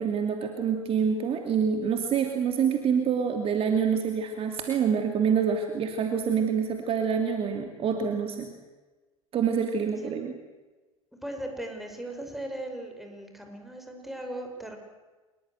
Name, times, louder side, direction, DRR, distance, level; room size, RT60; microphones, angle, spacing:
voice 1, 0.0-8.5 9.3-10.3, right 7 dB, 30° right, 5 dB, 2.6 m, -26 dB
voice 2, 9.8-10.2 11.2-14.8, right 1 dB, ahead, 3 dB, 5.4 m, -38 dB
25.0 x 22.0 x 7.9 m, 1.2 s
figure-of-eight pair, 80°, 18 cm